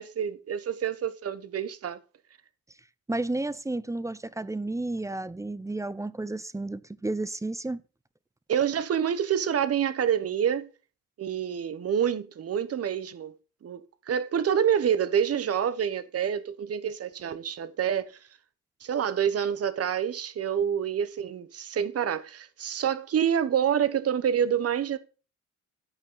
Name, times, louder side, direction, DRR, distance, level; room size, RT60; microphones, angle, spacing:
voice 1, 0.0-2.0 8.5-10.7 11.2-13.3 13.6-18.1 18.8-25.0, right 8 dB, 50° right, 1.2 m, -27 dB
voice 2, 3.1-7.8, right 2 dB, 10° right, 0.6 m, -32 dB
11.5 x 8.6 x 4.0 m
cardioid pair, 90°, 30 cm